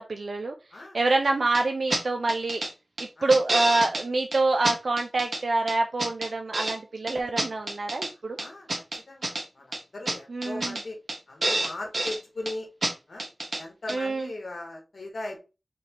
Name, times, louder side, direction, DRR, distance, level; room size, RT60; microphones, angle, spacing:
voice 1, 0.0-0.5 0.9-2.6 3.2-8.4 10.3-10.8 13.9-14.3, right 2 dB, 85° right, 4 dB, 0.4 m, -26 dB
sound 1, 1.5-1.6 1.9-2.0 2.3-2.7 3.0-4.0 4.3-4.4 4.6-5.4 5.7-6.8 7.1-8.1 8.4-9.4 9.7-9.8 10.1-10.2 10.4-10.8 11.1-11.2 11.4-12.2 12.5-12.6 12.8-12.9 13.2-13.6 13.9-14.0, right 2 dB, 70° right, 1.0 m, -28 dB
voice 2, 8.4-8.7 9.1-11.0 11.3-12.7 13.1-13.3 13.6-15.4, left 2 dB, 90° left, 1 dB, 1.0 m, -38 dB
4.0 x 3.4 x 2.8 m, 0.29 s
wide cardioid pair, 45°, 0 cm